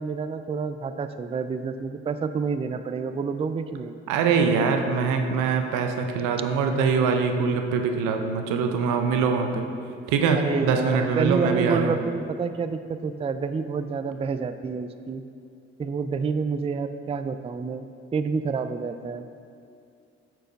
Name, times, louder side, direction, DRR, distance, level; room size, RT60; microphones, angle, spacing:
voice 1, 0.0-4.0 10.4-15.2 15.8-19.3, right 5 dB, 20° right, 10 dB, 0.4 m, -28 dB
voice 2, 4.1-9.6 10.1-12.0, right 5 dB, 80° right, 5 dB, 0.7 m, -23 dB
8.6 x 4.7 x 4.6 m, 2.4 s
hypercardioid pair, 50°, 31 cm